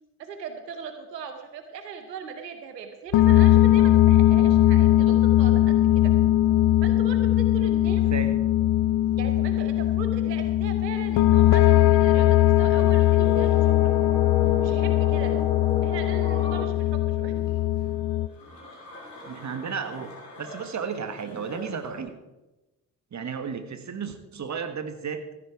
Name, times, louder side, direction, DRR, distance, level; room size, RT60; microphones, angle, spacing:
voice 1, 0.2-6.1 6.8-8.0 9.2-13.9 14.6-15.3 15.8-17.3, right 6 dB, 85° right, 7 dB, 0.9 m, -39 dB
sound 1, 3.1-18.3, left 14 dB, 55° left, 0.6 m, -20 dB
voice 2, 8.1-8.4 19.2-22.1 23.1-25.3, right 6 dB, 35° right, 9 dB, 1.5 m, -33 dB
sound 2, 8.8-22.0, left 1 dB, 90° left, 3.2 m, -48 dB
sound 3, 10.9-16.6, left 4 dB, 10° left, 4.8 m, -35 dB
14.5 x 10.5 x 4.8 m, 1.0 s
figure-of-eight pair, 45°, 48 cm